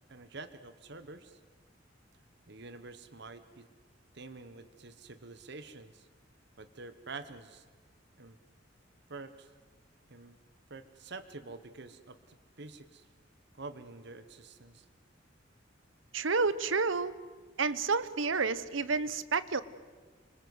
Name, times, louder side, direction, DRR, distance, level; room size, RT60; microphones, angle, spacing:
voice 1, 0.1-1.4 2.5-3.7 4.1-6.1 6.6-7.7 8.2-8.4 9.1-9.5 10.1-10.4 10.7-13.1 13.6-14.9, right 3 dB, 60° right, 11 dB, 1.3 m, -47 dB
voice 2, 16.1-17.1 17.6-19.6, right 4 dB, 90° right, 15 dB, 1.1 m, -30 dB
28.5 x 25.0 x 8.0 m, 1.5 s
head